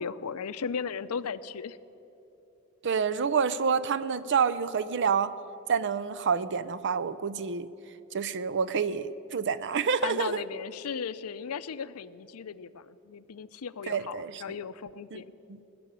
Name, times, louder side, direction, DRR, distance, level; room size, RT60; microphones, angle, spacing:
voice 1, 0.0-1.8 10.0-15.3, left 6 dB, 90° left, 15 dB, 0.5 m, -36 dB
voice 2, 2.8-5.3 5.7-7.7 8.1-10.4 13.9-14.4 15.1-15.2 15.5-15.6, right 6 dB, 55° right, 15 dB, 0.5 m, -28 dB
20.0 x 6.9 x 9.9 m, 2.9 s
head